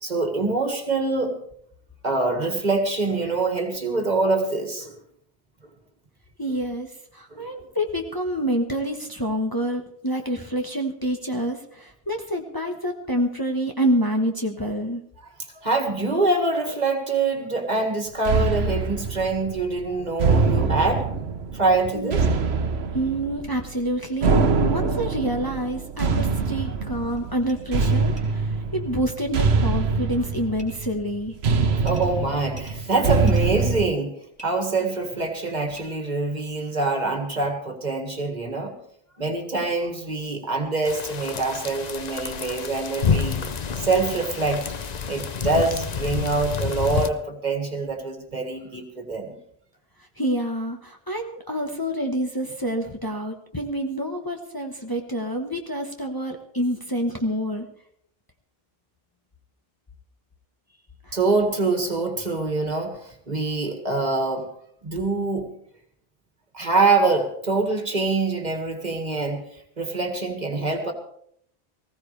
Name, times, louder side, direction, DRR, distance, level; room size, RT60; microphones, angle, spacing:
voice 1, 0.0-1.3 2.0-4.9 7.3-7.7 15.5-21.1 21.5-22.3 22.6-22.7 31.8-34.1 34.4-38.7 39.2-43.4 43.8-44.6 45.1-49.3 61.1-64.5 64.8-65.5 66.5-70.9, right 3 dB, 45° right, 4 dB, 2.1 m, -25 dB
voice 2, 6.4-15.0 21.9-22.2 22.9-31.3 50.2-57.7 61.1-61.2, equal, 20° left, 2 dB, 1.2 m, -27 dB
sound 1, 18.2-33.9, right 4 dB, 85° right, 1.2 m, -24 dB
sound 2, 27.2-27.3 27.4-27.5 27.8-27.9 28.2-28.3 30.6-30.8 31.8-32.1 32.5-33.5 34.4-34.5 35.7-35.8, right 1 dB, 5° right, 3.3 m, -46 dB
sound 3, 40.8-47.1, left 6 dB, 45° left, 0.8 m, -28 dB
19.5 x 15.5 x 3.4 m, 0.68 s
omnidirectional pair, 1.0 m